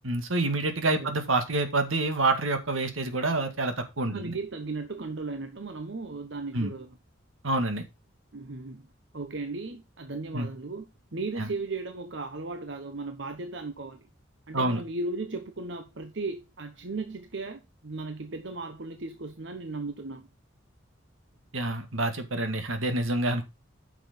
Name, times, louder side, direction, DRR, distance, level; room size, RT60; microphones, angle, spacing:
voice 1, 0.0-4.4 6.5-6.7 7.4-7.8 10.3-10.5 11.4-11.5 14.5-14.8 21.5-23.4, right 2 dB, 85° right, 1.8 m, -27 dB
voice 2, 4.1-7.0 8.3-8.9 9.1-10.9 11.1-14.1 14.5-20.3, right 3 dB, 65° right, 1.0 m, -36 dB
9.5 x 6.1 x 4.2 m
head